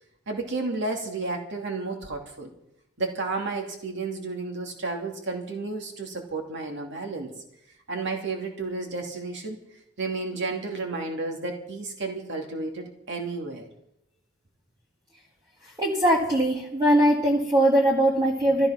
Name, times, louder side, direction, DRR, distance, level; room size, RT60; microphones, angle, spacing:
voice 1, 0.3-2.5 3.0-7.3 7.9-9.6 10.0-13.7, right 3 dB, 60° right, 3 dB, 2.7 m, -32 dB
voice 2, 15.8-18.7, right 1 dB, 20° right, -3 dB, 1.9 m, -21 dB
15.5 x 14.0 x 5.9 m, 0.79 s
head